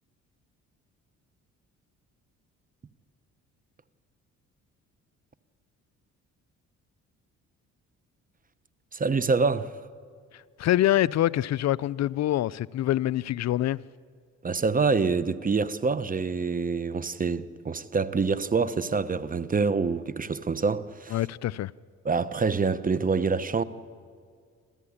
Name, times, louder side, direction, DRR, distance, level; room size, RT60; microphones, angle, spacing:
voice 1, 8.9-9.8 14.4-21.2 22.0-23.6, right 4 dB, 30° right, 1.0 m, -26 dB
voice 2, 10.3-13.8 21.1-21.7, left 13 dB, 60° left, 0.5 m, -25 dB
27.0 x 14.5 x 9.9 m
cardioid pair, 90°, 30 cm